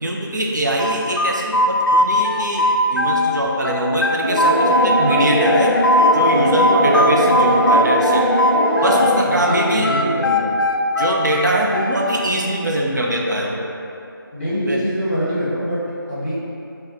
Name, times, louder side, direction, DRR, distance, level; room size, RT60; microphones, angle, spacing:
voice 1, 0.0-5.7 6.1-8.2 8.8-9.9 11.0-13.7 14.7-14.8, right 1 dB, 55° right, -1 dB, 0.5 m, -22 dB
sound 1, 0.8-3.3 3.6-6.2 6.6-9.2 9.5-12.1, left 1 dB, 70° left, 0.4 m, -19 dB
sound 2, 4.2-9.2, equal, 10° left, 0.6 m, -19 dB
voice 2, 9.3-10.6 14.3-16.3, equal, 30° left, -10 dB, 1.3 m, -24 dB
3.4 x 2.2 x 4.1 m, 2.6 s
figure-of-eight pair, 170°, 12 cm